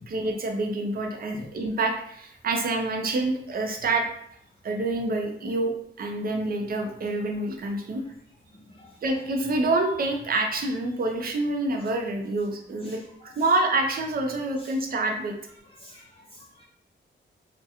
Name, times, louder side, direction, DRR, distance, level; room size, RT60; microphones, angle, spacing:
voice 1, 0.1-4.1 4.6-8.0 9.0-15.3, right 2 dB, 50° right, 3 dB, 0.5 m, -27 dB
voice 2, 8.5-8.9 12.8-13.3 14.6-14.7 15.8-16.6, left 2 dB, 30° left, -3 dB, 0.3 m, -49 dB
2.8 x 2.1 x 2.4 m, 0.70 s
cardioid pair, 105°, 20 cm